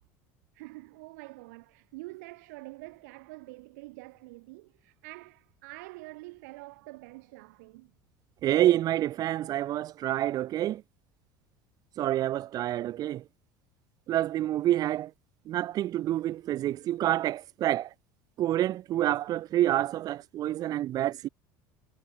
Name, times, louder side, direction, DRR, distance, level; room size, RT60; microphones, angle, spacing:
voice 1, 0.5-7.9, right 24 dB, 80° right, 2.0 m, -46 dB
voice 2, 8.4-10.8 12.0-13.2 14.1-15.1 15.5-17.9 18.4-21.3, right 13 dB, 45° right, 0.4 m, -28 dB
supercardioid pair, 90°, 9 cm